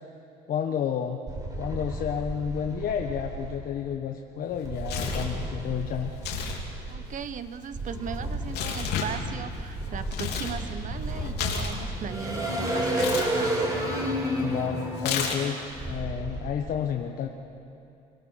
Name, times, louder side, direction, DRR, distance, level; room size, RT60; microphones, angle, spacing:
voice 1, 0.5-1.2 1.6-6.1 14.4-17.3, left 8 dB, 60° left, 3 dB, 1.3 m, -31 dB
sound 1, 1.3-3.6 4.6-7.2 7.7-16.5, right 1 dB, 20° right, 5.3 m, -32 dB
Tearing, 4.5-5.4 6.1-6.6 6.9-10.6 10.9-12.4 12.9-13.3 15.0-15.6, left 7 dB, 75° left, 3.1 m, -32 dB
voice 2, 6.9-13.5, right 7 dB, 50° right, 12 dB, 1.0 m, -37 dB
24.5 x 18.5 x 6.5 m, 2.7 s
cardioid pair, 110°, 17 cm